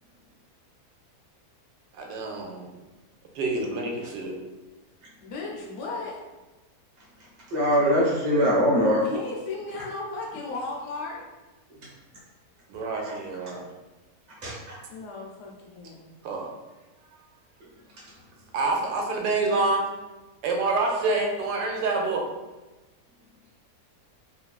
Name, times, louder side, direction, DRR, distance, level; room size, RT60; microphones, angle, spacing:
voice 1, 1.9-2.7 3.3-4.4 12.7-13.7 16.2-16.5 18.5-19.9 20.4-22.3, right 3 dB, 85° right, 2 dB, 1.1 m, -27 dB
voice 2, 5.2-6.2 7.7-7.8 9.0-11.2 14.9-16.1, left 3 dB, 90° left, -2 dB, 1.2 m, -35 dB
voice 3, 7.5-9.0 13.1-13.2 14.4-14.8, equal, 35° right, -6 dB, 0.7 m, -22 dB
3.2 x 2.3 x 2.2 m, 1.1 s
omnidirectional pair, 1.7 m